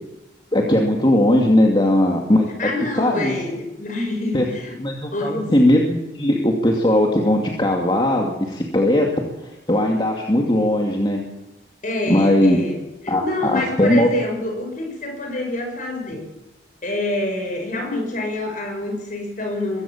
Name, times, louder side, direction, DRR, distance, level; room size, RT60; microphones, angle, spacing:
voice 1, 0.5-2.5 2.9-3.3 4.3-4.5 4.8-9.1 9.4-11.2 12.1-12.6 13.1-14.1, left 1 dB, 25° left, 0 dB, 2.5 m, -18 dB
voice 2, 2.6-4.8 5.1-5.5 11.8-16.3 16.8-19.8, left 2 dB, 45° left, 3 dB, 6.7 m, -27 dB
23.0 x 15.5 x 7.4 m, 0.97 s
head